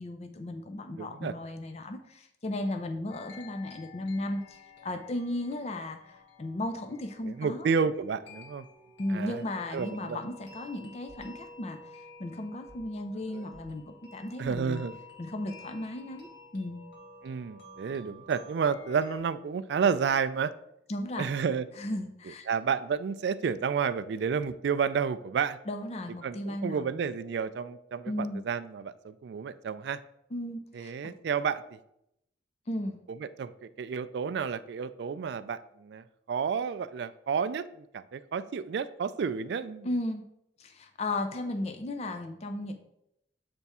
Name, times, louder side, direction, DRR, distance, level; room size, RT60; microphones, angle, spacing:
voice 1, 0.0-7.7 9.0-13.8 14.1-14.8 15.2-16.8 20.9-21.3 21.8-22.5 25.7-26.9 28.1-28.4 30.3-31.1 32.7-33.0 39.8-40.2 40.6-42.7, left 1 dB, 35° left, 6 dB, 0.4 m, -35 dB
voice 2, 1.0-1.3 7.3-8.6 9.1-9.4 9.7-10.2 13.3-13.5 14.4-15.0 17.2-20.5 21.2-21.7 22.5-25.6 26.2-30.0 30.7-31.6 33.4-39.9, right 6 dB, 65° right, 14 dB, 0.3 m, -31 dB
sound 1, 3.1-19.2, left 2 dB, 75° left, 1.4 m, -52 dB
sound 2, 11.1-11.4 12.7-13.0 13.5-13.8 14.4-14.8, equal, 10° left, 1.7 m, -55 dB
6.9 x 3.5 x 4.2 m, 0.81 s
head